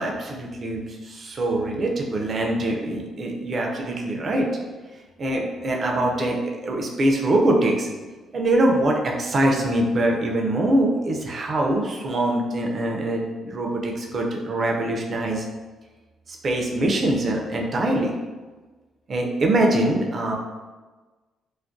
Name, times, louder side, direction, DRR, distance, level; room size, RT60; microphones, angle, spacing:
voice 1, 0.0-4.5 5.2-7.9 8.3-15.5 16.3-18.1 19.1-20.3, right 1 dB, 45° right, 0 dB, 0.4 m, -23 dB
2.3 x 2.1 x 2.5 m, 1.3 s
cardioid pair, 90°, 0 cm